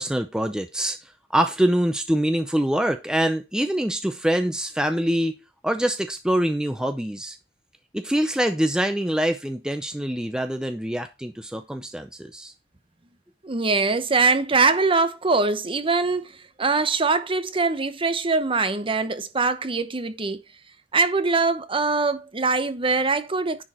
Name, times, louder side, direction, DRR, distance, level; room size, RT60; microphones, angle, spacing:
voice 1, 0.0-5.3 5.6-7.4 7.9-12.5, right 1 dB, 5° right, 0.5 m, -24 dB
voice 2, 13.4-16.3 16.6-20.4 20.9-23.6, right 4 dB, 30° right, 0.8 m, -22 dB
10.5 x 4.7 x 4.2 m
head